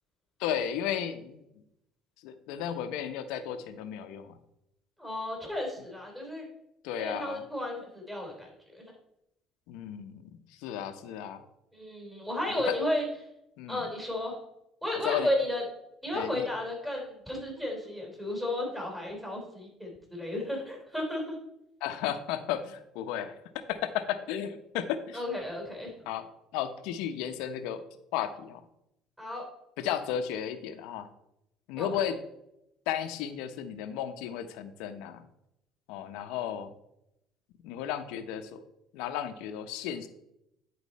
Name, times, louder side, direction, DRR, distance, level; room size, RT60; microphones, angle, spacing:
voice 1, 0.4-1.4 2.2-4.4 6.8-7.4 9.7-10.2 10.6-11.4 12.5-12.8 13.6-13.9 15.0-15.3 16.1-16.5 21.8-23.3 23.7-25.2 26.1-26.3 26.5-27.8 28.1-28.6 29.8-31.1 31.7-32.2 32.9-35.2 35.9-36.7 37.6-38.6 38.9-40.1, left 9 dB, 80° left, 9 dB, 0.8 m, -34 dB
voice 2, 5.0-6.5 7.0-8.5 8.7-8.9 11.7-13.0 13.7-14.4 14.8-15.6 16.0-21.4 25.1-25.9 29.2-29.4 31.8-31.9, left 1 dB, 10° right, 0 dB, 3.4 m, -33 dB
10.0 x 4.4 x 4.1 m, 0.82 s
cardioid pair, 105°, 0 cm